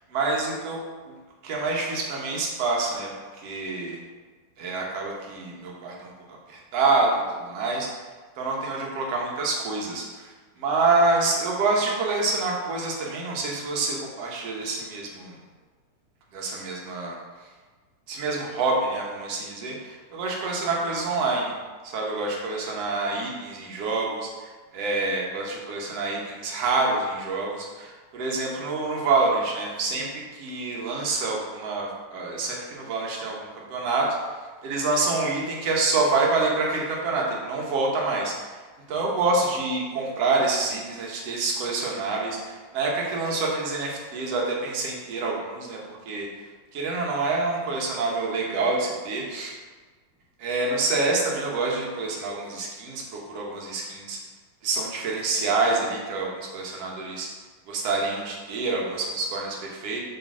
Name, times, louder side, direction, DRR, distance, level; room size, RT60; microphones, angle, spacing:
voice 1, 0.1-0.8 1.4-4.0 4.6-6.1 6.5-7.9 8.4-15.4 16.3-17.2 18.1-21.5 21.8-38.6 38.9-46.3 46.7-49.5 50.4-54.2 54.6-57.3 57.7-60.0, right 3 dB, 60° right, -2 dB, 1.7 m, -27 dB
6.7 x 3.8 x 6.2 m, 1.4 s
omnidirectional pair, 4.1 m